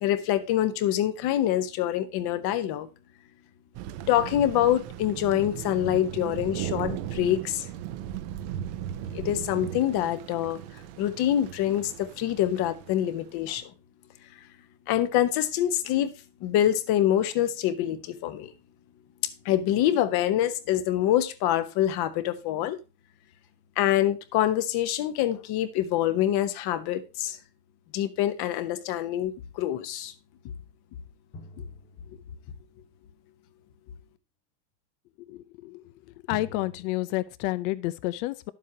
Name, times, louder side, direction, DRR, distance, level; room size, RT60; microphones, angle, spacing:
voice 1, 0.0-2.9 4.1-7.7 9.1-10.6 11.0-13.7 14.9-16.1 16.4-18.5 19.4-22.8 23.8-27.4 27.9-30.1, left 12 dB, 50° left, 1.2 m, -25 dB
Thunder, 3.7-13.5, right 11 dB, 75° right, 1.0 m, -37 dB
sound 1, 31.3-33.0 36.3-36.9, left 2 dB, 30° left, 1.6 m, -45 dB
voice 2, 35.2-35.9 36.3-38.5, left 18 dB, 80° left, 0.8 m, -30 dB
11.0 x 7.4 x 2.8 m
cardioid pair, 160°, 48 cm